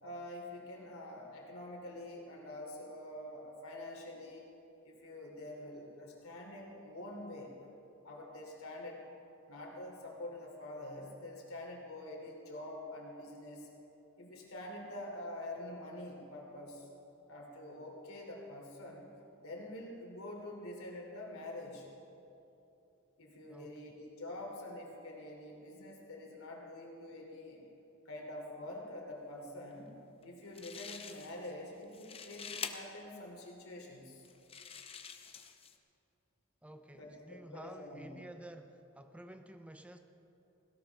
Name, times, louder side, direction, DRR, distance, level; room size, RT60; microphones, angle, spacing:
voice 1, 0.0-4.5 4.8-7.5 8.0-9.1 9.5-13.7 14.2-16.9 17.3-19.1 19.4-21.9 23.2-27.6 28.0-29.9 30.2-34.2 36.9-38.1, left 1 dB, 85° left, -1 dB, 3.1 m, -46 dB
voice 2, 23.5-23.8 36.6-40.0, right 1 dB, 5° right, 7 dB, 0.5 m, -51 dB
sound 1, 30.2-30.3 30.5-31.5 31.8-32.7 33.5-33.6 34.2-35.8, left 7 dB, 30° left, 0.7 m, -46 dB
18.0 x 17.0 x 3.5 m, 2.9 s
head